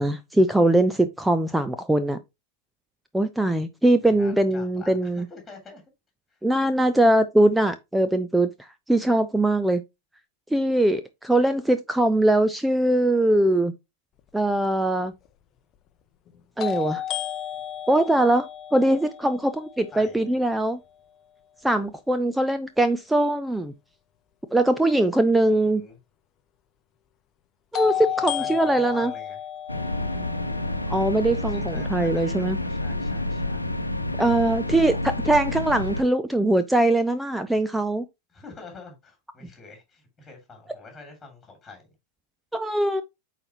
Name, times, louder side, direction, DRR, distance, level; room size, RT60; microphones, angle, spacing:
voice 1, 0.0-2.2 3.1-5.3 6.4-8.5 8.9-9.8 10.5-13.7 14.3-15.1 16.6-17.0 17.9-20.8 21.6-23.7 24.5-25.8 27.7-29.1 30.9-32.6 34.2-35.0 35.3-38.0 42.5-43.0, right 1 dB, 5° right, 0.5 m, -21 dB
voice 2, 4.0-5.8 6.3-6.4 19.9-20.2 25.5-26.0 27.8-29.4 31.5-33.8 34.6-35.1 38.3-41.8, left 3 dB, 10° left, 2.8 m, -46 dB
sound 1, 14.6-14.7 16.6-20.5 27.7-31.8, left 11 dB, 30° left, 0.7 m, -33 dB
sound 2, 29.7-36.0, left 2 dB, 85° left, 0.8 m, -29 dB
8.7 x 4.2 x 2.9 m
figure-of-eight pair, 90°, 0 cm